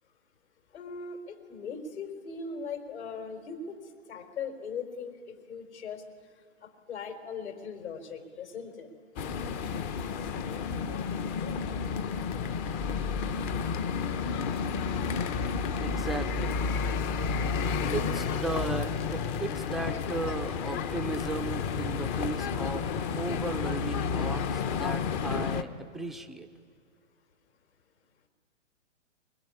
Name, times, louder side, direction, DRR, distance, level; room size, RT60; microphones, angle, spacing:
voice 1, 0.7-3.8 4.1-6.0 6.6-8.9, left 5 dB, 60° left, 5 dB, 4.3 m, -39 dB
sound 1, 9.2-25.6, left 5 dB, 25° left, 0.9 m, -31 dB
voice 2, 15.8-16.5 17.9-22.9 23.2-26.5, right 2 dB, ahead, 6 dB, 0.6 m, -36 dB
22.5 x 21.5 x 9.9 m, 2.1 s
figure-of-eight pair, 125°, 38 cm